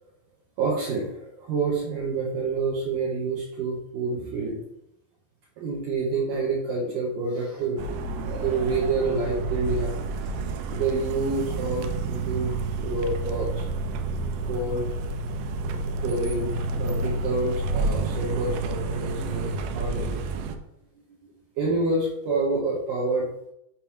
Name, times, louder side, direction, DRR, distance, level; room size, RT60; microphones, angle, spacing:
voice 1, 0.6-4.6 5.6-10.0 10.7-12.5 12.8-13.7 14.5-14.8 15.7-15.8 16.0-20.2 21.6-23.3, right 3 dB, 70° right, -4 dB, 2.4 m, -28 dB
sound 1, 7.8-20.6, right 3 dB, 85° right, 2.5 m, -29 dB
7.3 x 3.0 x 5.6 m, 0.82 s
omnidirectional pair, 4.3 m